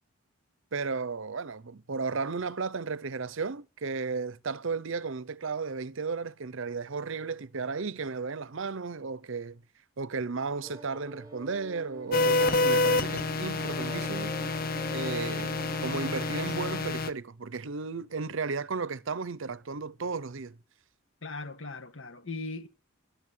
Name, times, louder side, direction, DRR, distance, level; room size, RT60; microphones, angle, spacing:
voice 1, 0.7-9.6 10.0-14.3 14.9-20.6, right 4 dB, 65° right, 0.7 m, -34 dB
sound 1, 10.6-16.8, equal, 15° right, 1.6 m, -44 dB
sound 2, 12.1-17.1, left 2 dB, 40° left, 0.8 m, -28 dB
voice 2, 21.2-22.7, left 3 dB, 65° left, 1.5 m, -38 dB
11.5 x 9.4 x 9.9 m
head